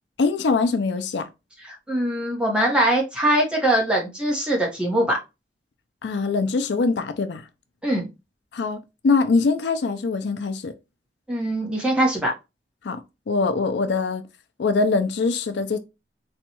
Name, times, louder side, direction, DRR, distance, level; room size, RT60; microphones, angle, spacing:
voice 1, 0.2-1.3 6.0-7.5 8.5-10.7 12.8-14.2 14.6-15.8, left 4 dB, 80° left, 0.4 m, -23 dB
voice 2, 1.6-5.2 7.8-8.1 11.3-12.3, right 1 dB, 5° right, 0.9 m, -22 dB
4.0 x 2.3 x 2.9 m
head